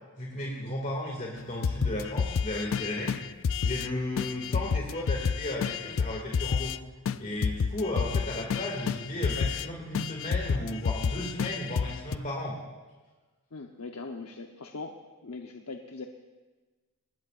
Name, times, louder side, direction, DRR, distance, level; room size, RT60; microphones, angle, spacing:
voice 1, 0.2-3.1 3.6-6.7 7.2-12.6, left 1 dB, 35° left, -2 dB, 2.3 m, -34 dB
sound 1, 1.6-3.9 4.2-6.8 7.0-7.2 7.4-9.7 9.9-12.2, left 6 dB, 60° left, 0.4 m, -30 dB
voice 2, 13.5-14.9 15.2-16.1, left 3 dB, 85° left, 2 dB, 0.9 m, -40 dB
24.0 x 19.0 x 2.5 m, 1.3 s
head